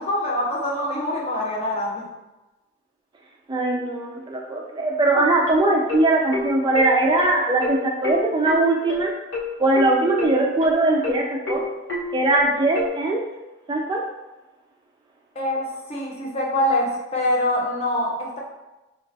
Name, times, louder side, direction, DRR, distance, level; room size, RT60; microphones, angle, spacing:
voice 1, 0.0-2.1 15.3-18.4, left 1 dB, 30° left, -3 dB, 0.8 m, -24 dB
voice 2, 3.5-9.1 9.6-11.6 12.1-13.2 13.7-14.0, right 2 dB, 25° right, 0 dB, 0.3 m, -20 dB
sound 1, 5.1-12.9, left 3 dB, 85° left, 1.2 m, -29 dB
4.7 x 2.2 x 3.2 m, 1.1 s
head